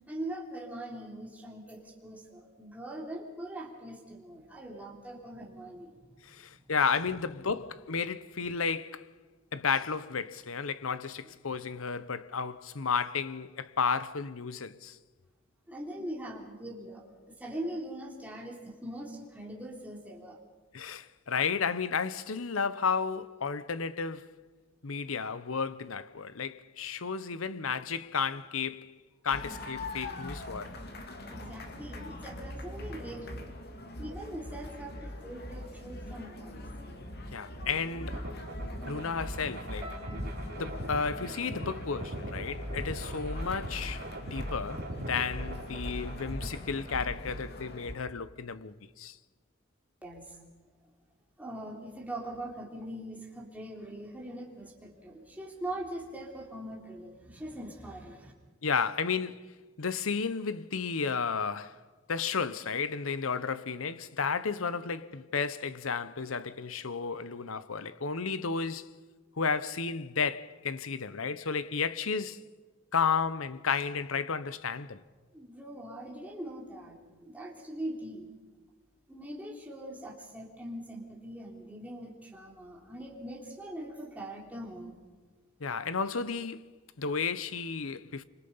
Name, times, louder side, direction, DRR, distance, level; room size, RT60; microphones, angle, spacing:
voice 1, 0.1-6.0 11.3-11.4 15.7-17.0 17.4-20.4 31.3-33.5 34.0-36.6 50.0-50.4 51.4-58.3 75.3-78.3 79.1-84.9, right 1 dB, 10° right, 3.5 m, -42 dB
voice 2, 6.2-9.1 9.5-15.0 20.7-24.3 24.8-28.9 29.2-30.7 37.3-38.2 38.9-39.9 40.6-49.2 58.6-59.4 59.8-61.8 62.1-68.9 69.4-72.4 72.9-75.0 85.6-86.7 87.0-88.2, left 5 dB, 80° left, 0.9 m, -32 dB
sound 1, 29.3-47.9, left 1 dB, 50° left, 2.5 m, -41 dB
sound 2, 38.1-47.0, right 1 dB, 50° right, 3.5 m, -41 dB
sound 3, 39.8-44.0 44.3-45.1 45.6-45.9, left 1 dB, 30° right, 2.1 m, -54 dB
26.0 x 26.0 x 5.6 m
head